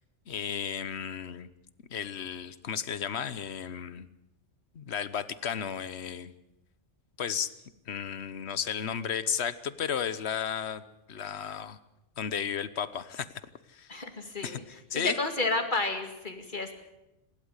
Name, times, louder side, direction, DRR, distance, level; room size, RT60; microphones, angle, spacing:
voice 1, 0.3-1.5 1.9-4.1 4.7-6.3 7.2-7.5 7.9-10.8 11.1-11.8 12.2-13.3 13.7-13.9 14.4-14.6 14.9-15.2, left 8 dB, 65° left, 15 dB, 1.2 m, -33 dB
voice 2, 13.9-14.6 14.9-16.7, left 3 dB, 45° left, 6 dB, 2.5 m, -31 dB
26.5 x 12.0 x 8.1 m, 0.93 s
omnidirectional pair, 1.2 m